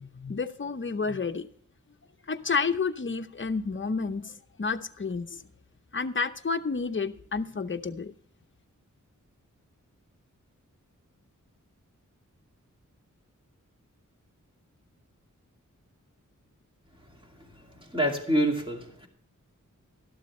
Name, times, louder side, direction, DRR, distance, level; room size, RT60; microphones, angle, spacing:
voice 1, 0.0-1.5 2.3-5.4 5.9-8.1, left 4 dB, 40° left, 8 dB, 0.8 m, -30 dB
voice 2, 17.7-19.1, right 1 dB, 15° right, 1 dB, 2.4 m, -27 dB
12.5 x 12.0 x 3.2 m, 0.64 s
wide cardioid pair, 95°, 31 cm